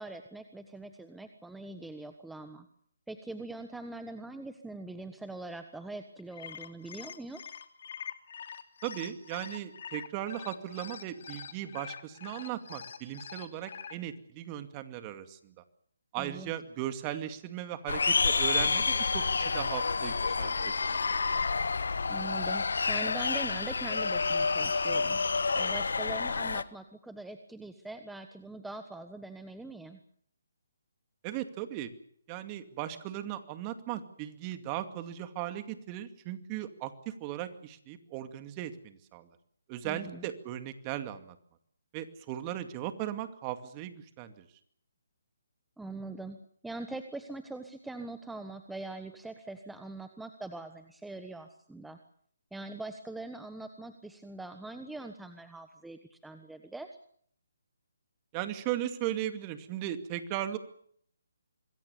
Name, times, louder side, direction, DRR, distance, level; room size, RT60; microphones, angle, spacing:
voice 1, 0.0-2.7 3.1-7.4 16.2-16.5 22.1-25.2 25.5-30.0 39.8-40.3 45.8-46.4 46.6-52.0 52.5-56.9, right 2 dB, 5° right, 8 dB, 1.3 m, -42 dB
sound 1, 6.2-13.9, left 7 dB, 55° left, 2.9 m, -44 dB
voice 2, 8.8-15.6 16.1-21.0 31.2-31.9 32.3-39.3 39.7-41.4 41.9-44.5 58.3-60.6, right 12 dB, 25° right, 9 dB, 2.3 m, -37 dB
sound 2, 17.9-26.6, left 4 dB, 70° left, 1.4 m, -29 dB
26.0 x 21.5 x 7.0 m, 0.64 s
figure-of-eight pair, 150°, 0 cm